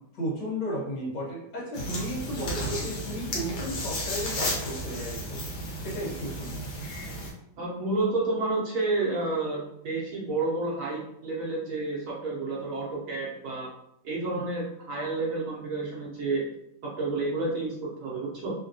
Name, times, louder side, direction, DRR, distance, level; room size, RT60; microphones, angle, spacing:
voice 1, 0.1-5.4 5.8-6.7 14.3-14.4, equal, 65° left, -6 dB, 1.9 m, -34 dB
sound 1, 1.7-7.3, equal, 85° left, 1.6 m, -33 dB
voice 2, 7.6-13.7 14.0-16.5 16.8-18.5, right 3 dB, 70° right, -4 dB, 0.8 m, -30 dB
3.5 x 2.2 x 2.6 m, 0.77 s
omnidirectional pair, 2.1 m